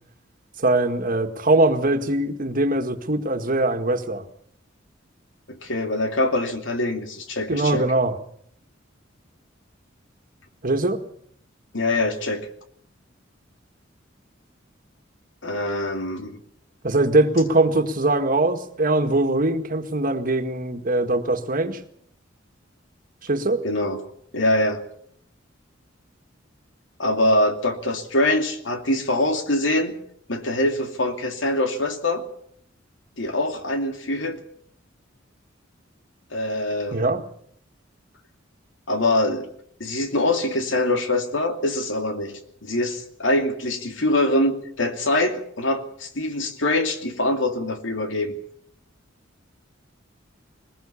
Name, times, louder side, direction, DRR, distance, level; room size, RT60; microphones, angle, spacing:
voice 1, 0.6-4.2 7.5-8.2 10.6-11.0 16.8-21.8 23.2-23.6 36.9-37.2, right 2 dB, 45° right, 7 dB, 1.8 m, -21 dB
voice 2, 5.5-7.8 11.7-12.5 15.4-16.4 23.6-24.0 24.3-24.8 27.0-30.0 30.3-32.2 33.2-34.4 36.3-37.1 38.9-39.5 39.8-48.3, left 1 dB, 75° left, 6 dB, 2.7 m, -24 dB
21.0 x 21.0 x 7.2 m, 0.65 s
head